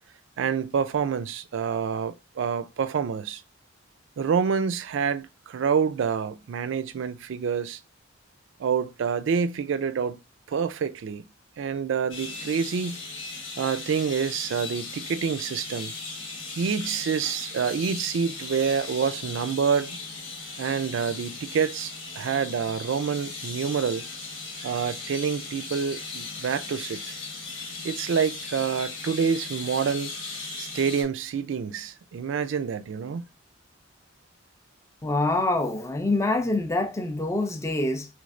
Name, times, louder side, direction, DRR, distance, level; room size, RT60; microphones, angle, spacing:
voice 1, 0.4-3.4 4.2-7.8 8.6-10.2 10.5-11.2 11.6-13.0 13.6-15.9 16.6-20.0 20.6-24.0 24.6-27.0 27.8-30.1 30.6-33.3, right 6 dB, 65° right, 0.3 m, -27 dB
sound 1, 12.1-31.0, left 3 dB, 85° left, 1.2 m, -37 dB
voice 2, 35.0-38.1, left 2 dB, 15° left, 0.4 m, -25 dB
3.3 x 3.1 x 2.4 m
head